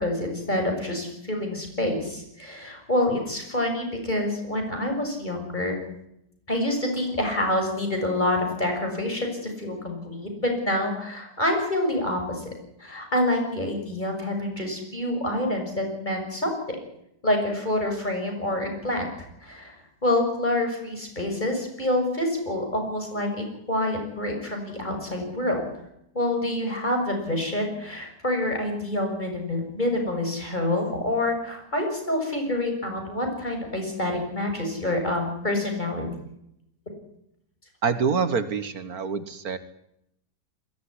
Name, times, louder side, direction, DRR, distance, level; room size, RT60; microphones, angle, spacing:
voice 1, 0.0-5.8 6.5-12.4 12.8-16.8 17.2-19.1 19.4-19.7 20.0-25.7 26.1-36.1, left 1 dB, 25° left, 3 dB, 6.6 m, -27 dB
voice 2, 37.8-39.6, right 5 dB, 65° right, 12 dB, 1.8 m, -26 dB
21.5 x 17.5 x 9.9 m, 0.81 s
omnidirectional pair, 1.8 m